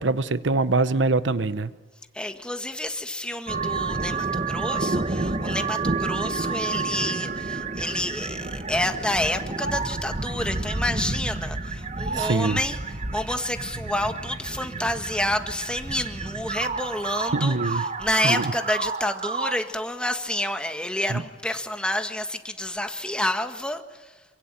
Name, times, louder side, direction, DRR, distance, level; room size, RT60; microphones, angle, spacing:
voice 1, 0.0-1.7 12.1-12.6 17.3-17.8 18.2-18.4 21.1-21.2, right 3 dB, 85° right, 0.9 m, -23 dB
voice 2, 2.1-24.2, left 1 dB, 5° left, 1.7 m, -29 dB
sound 1, 3.5-19.6, right 3 dB, 35° right, 1.1 m, -30 dB
27.5 x 23.5 x 9.0 m
head